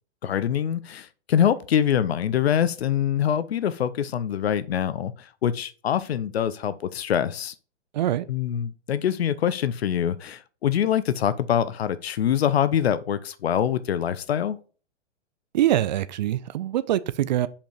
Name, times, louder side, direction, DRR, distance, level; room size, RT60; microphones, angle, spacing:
voice 1, 0.2-7.5 8.3-14.6, left 9 dB, 60° left, 0.7 m, -24 dB
voice 2, 7.9-8.3 15.5-17.5, right 12 dB, 40° right, 0.5 m, -24 dB
5.2 x 5.1 x 5.0 m
figure-of-eight pair, 115°, 35 cm